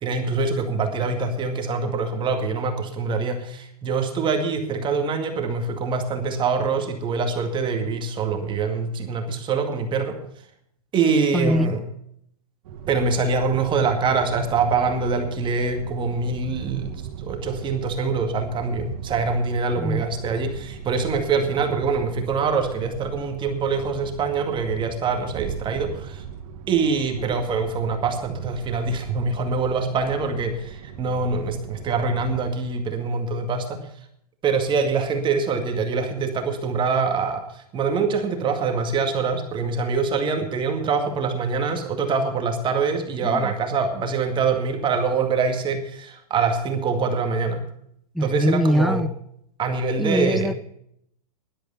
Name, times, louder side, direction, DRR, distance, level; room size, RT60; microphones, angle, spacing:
voice 1, 0.0-10.2 10.9-11.8 12.9-17.0 17.2-26.2 26.7-33.8 34.4-47.6 48.2-49.0 49.6-50.5, right 4 dB, 25° right, 2.1 m, -24 dB
voice 2, 11.3-11.8 19.8-20.0 43.2-43.5 48.1-49.1 50.0-50.5, equal, ahead, 0.4 m, -23 dB
sound 1, 12.6-32.5, right 8 dB, 60° right, 2.2 m, -38 dB
12.5 x 11.5 x 5.6 m
hypercardioid pair, 125°, 20 cm